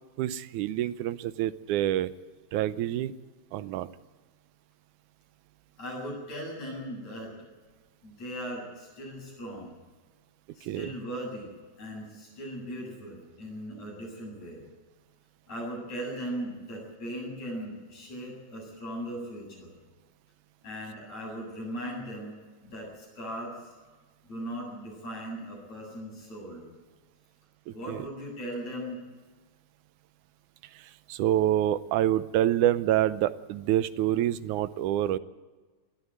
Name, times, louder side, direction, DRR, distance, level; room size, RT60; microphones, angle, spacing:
voice 1, 0.2-2.1 2.5-3.1 3.5-3.9 10.6-10.9 27.7-28.1 30.8-35.2, right 12 dB, 85° right, 14 dB, 2.2 m, -27 dB
voice 2, 5.8-7.3 8.0-9.7 10.5-14.6 15.5-19.8 20.6-22.4 22.6-23.7 24.3-26.7 27.7-29.0, equal, 65° left, -2 dB, 9.3 m, -38 dB
20.5 x 13.0 x 9.5 m, 1.3 s
omnidirectional pair, 3.4 m